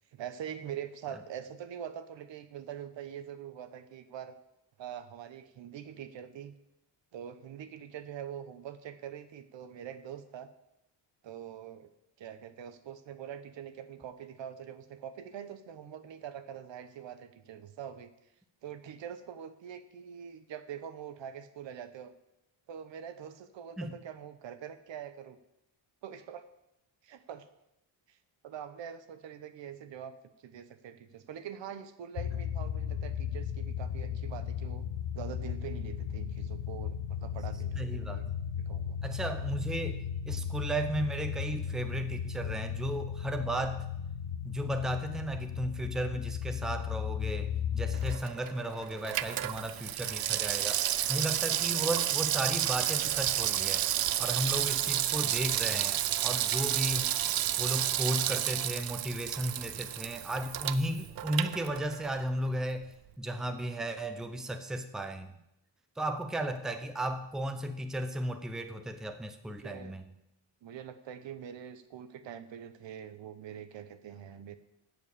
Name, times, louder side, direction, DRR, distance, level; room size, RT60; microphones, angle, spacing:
voice 1, 0.1-4.4 4.8-6.5 7.1-10.5 11.2-11.9 12.2-18.1 18.6-22.1 22.7-25.4 26.0-26.4 27.0-27.5 28.1-28.2 28.4-30.2 30.4-34.9 35.1-38.2 38.6-39.0 69.6-69.9 70.6-74.6, right 9 dB, 75° right, 10 dB, 1.0 m, -44 dB
sound 1, 32.2-48.2, left 8 dB, 75° left, 0.7 m, -36 dB
voice 2, 37.8-38.3 39.0-43.8 44.4-53.9 54.2-57.2 57.6-62.9 63.2-65.3 66.0-70.1, right 1 dB, ahead, 8 dB, 0.6 m, -35 dB
Water tap faucet / Sink (filling or washing), 47.9-62.2 62.5-62.6, right 12 dB, 55° right, 0.5 m, -31 dB
8.3 x 7.0 x 8.4 m, 0.85 s
wide cardioid pair, 160°, 45 cm